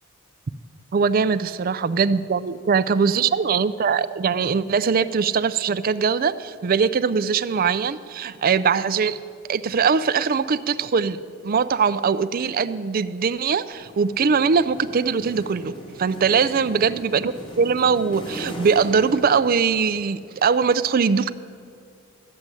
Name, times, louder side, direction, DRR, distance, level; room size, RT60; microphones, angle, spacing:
voice 1, 0.9-9.2 9.5-11.2 11.4-15.7 16.0-21.3, right 5 dB, 40° right, 14 dB, 0.4 m, -21 dB
sound 1, 13.7-20.2, equal, 25° left, 1.5 m, -39 dB
12.5 x 7.6 x 9.8 m, 2.4 s
head